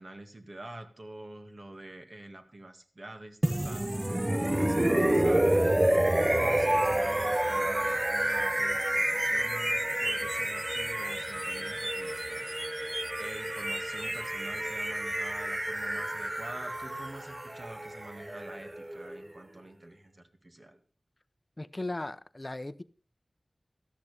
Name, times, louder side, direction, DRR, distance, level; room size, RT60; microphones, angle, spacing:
voice 1, 0.0-12.8 13.0-20.8, right 1 dB, 50° right, 2.0 m, -47 dB
sound 1, 3.4-19.3, right 1 dB, 25° right, 0.7 m, -29 dB
voice 2, 21.6-22.8, left 2 dB, 35° left, 0.6 m, -37 dB
17.5 x 13.0 x 3.4 m
wide cardioid pair, 70°, 0 cm